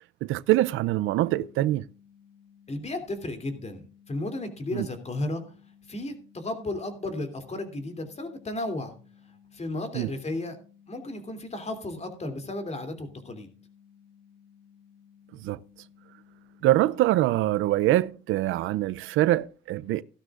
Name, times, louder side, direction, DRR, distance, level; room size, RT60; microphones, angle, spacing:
voice 1, 0.2-1.8 4.7-4.9 9.9-10.1 15.4-15.6 16.6-20.0, right 15 dB, 85° right, 0.5 m, -24 dB
sound 1, 1.4-17.3, left 8 dB, 75° left, 2.7 m, -58 dB
voice 2, 2.7-5.4 5.9-8.9 9.5-10.6 10.9-13.5, left 2 dB, 35° left, 2.9 m, -34 dB
15.0 x 12.5 x 2.5 m
cardioid pair, 90°, 20 cm